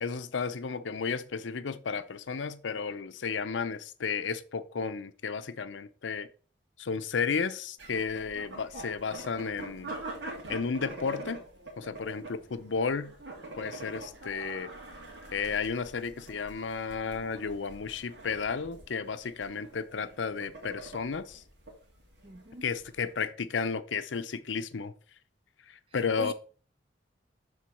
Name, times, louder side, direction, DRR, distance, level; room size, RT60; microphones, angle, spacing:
voice 1, 0.0-6.3 6.8-9.9 10.5-11.4 11.8-13.1 13.6-14.7 15.3-21.4 22.6-24.9 25.7-26.3, left 5 dB, 90° left, 0.6 m, -33 dB
sound 1, 7.8-23.1, right 2 dB, 75° right, 2.2 m, -45 dB
voice 2, 22.2-22.7 26.2-26.3, right 3 dB, 30° right, 0.4 m, -41 dB
7.6 x 3.9 x 5.3 m
head